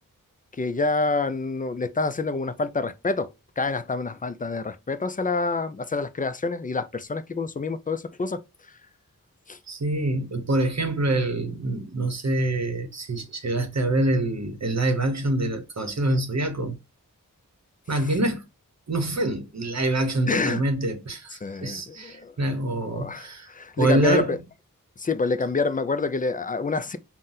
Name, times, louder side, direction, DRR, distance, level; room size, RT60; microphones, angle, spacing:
voice 1, 0.6-3.3 3.6-8.4 9.5-9.6 20.3-20.6 21.4-22.3 22.9-24.4 25.0-27.0, left 3 dB, 25° left, 0.4 m, -27 dB
voice 2, 9.7-16.8 17.9-18.4 18.9-23.5 23.8-24.4, right 1 dB, 50° right, 0.8 m, -25 dB
3.9 x 2.2 x 2.5 m
wide cardioid pair, 45°, 35 cm